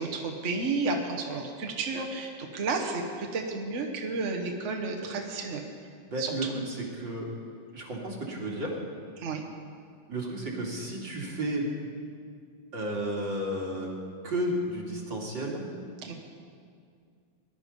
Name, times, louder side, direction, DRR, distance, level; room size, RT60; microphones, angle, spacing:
voice 1, 0.0-5.6 6.2-6.5 9.2-9.4 16.0-16.1, right 3 dB, 45° right, 2 dB, 1.3 m, -32 dB
voice 2, 6.1-7.3 7.7-8.8 10.1-11.7 12.7-13.9 14.2-15.6, right 1 dB, 75° right, -3 dB, 3.2 m, -32 dB
19.0 x 11.5 x 5.4 m, 2.3 s
omnidirectional pair, 2.1 m